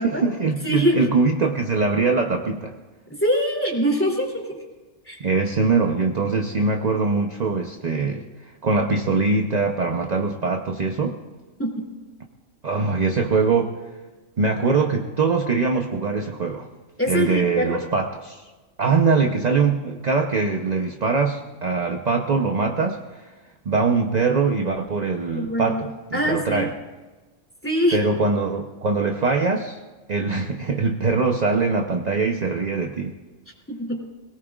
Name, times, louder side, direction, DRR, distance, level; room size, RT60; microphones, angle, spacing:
voice 1, 0.0-2.7 5.2-8.2 8.6-11.2 12.6-13.7 14.4-16.7 17.1-18.4 18.8-23.3 23.7-25.8 26.1-26.7 27.9-29.8 30.1-33.1, right 4 dB, 40° right, 3 dB, 0.8 m, -22 dB
voice 2, 0.6-1.1 3.1-4.6 5.0-5.2 11.6-11.8 17.0-17.8 25.3-25.8 26.1-26.7 27.6-28.0 33.7-34.0, equal, 10° left, -2 dB, 2.9 m, -23 dB
22.5 x 18.5 x 2.4 m, 1.2 s
omnidirectional pair, 1.2 m